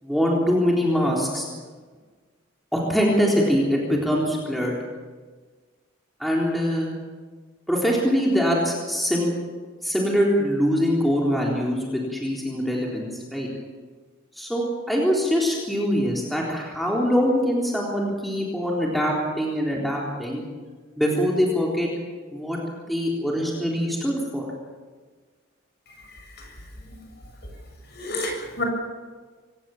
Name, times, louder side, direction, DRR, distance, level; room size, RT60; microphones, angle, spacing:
voice 1, 0.0-1.5 2.7-4.8 6.2-6.9 7.7-9.3 9.8-13.5 14.4-20.4 21.0-21.9 22.3-22.6 22.9-24.5, equal, ahead, -3 dB, 3.8 m, -23 dB
voice 2, 26.0-26.6 26.9-27.0 27.9-28.6, left 2 dB, 55° left, 2 dB, 7.1 m, -32 dB
25.0 x 17.5 x 7.3 m, 1.4 s
head